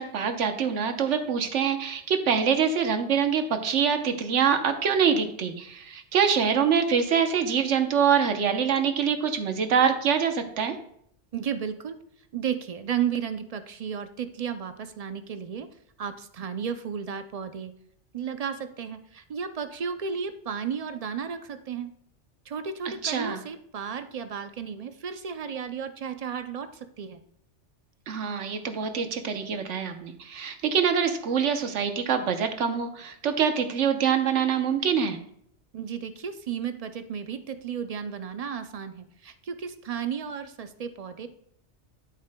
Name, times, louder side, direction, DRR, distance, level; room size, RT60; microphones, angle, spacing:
voice 1, 0.0-10.7 23.0-23.4 28.1-35.2, right 7 dB, 90° right, 7 dB, 1.2 m, -25 dB
voice 2, 11.3-12.0 12.3-15.7 16.0-17.7 18.1-21.9 22.5-27.2 35.7-41.3, right 7 dB, 65° right, 9 dB, 0.3 m, -33 dB
12.0 x 7.3 x 2.2 m, 0.68 s
omnidirectional pair, 1.2 m